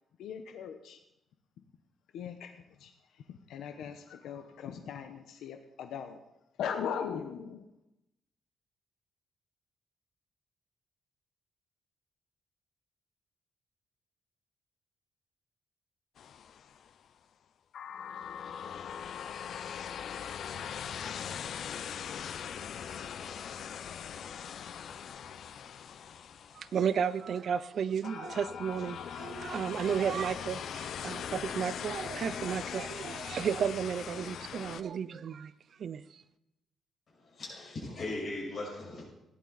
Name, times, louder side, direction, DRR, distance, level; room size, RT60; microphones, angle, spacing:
voice 1, 0.2-1.0 2.1-2.9 3.3-6.2 6.6-7.6, left 7 dB, 90° left, 6 dB, 1.0 m, -39 dB
sound 1, 16.2-16.9 17.7-27.3 28.0-34.8, left 8 dB, 60° left, 0.6 m, -41 dB
voice 2, 26.5-35.5 35.8-36.2, right 7 dB, 50° right, 16 dB, 0.5 m, -33 dB
voice 3, 37.1-39.0, left 2 dB, 40° left, -3 dB, 6.0 m, -38 dB
16.5 x 11.0 x 4.1 m, 0.88 s
cardioid pair, 160°, 0 cm